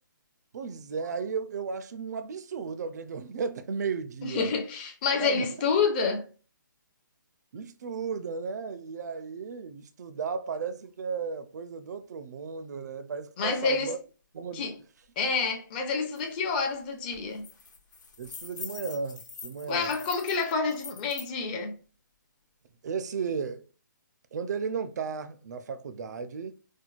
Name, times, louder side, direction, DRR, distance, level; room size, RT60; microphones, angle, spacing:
voice 1, 0.5-4.5 5.2-5.5 7.5-14.0 14.3-14.6 18.2-19.9 22.8-23.7 24.3-26.6, right 5 dB, 55° right, 0.4 m, -34 dB
voice 2, 4.2-6.3 13.4-13.9 14.5-14.8 15.2-17.5 19.7-21.8, left 5 dB, 25° left, 0.7 m, -28 dB
sound 1, 16.2-16.3 16.6-16.8 17.1-21.3, left 4 dB, 65° left, 1.1 m, -44 dB
4.4 x 2.2 x 2.4 m
hypercardioid pair, 155°, 11 cm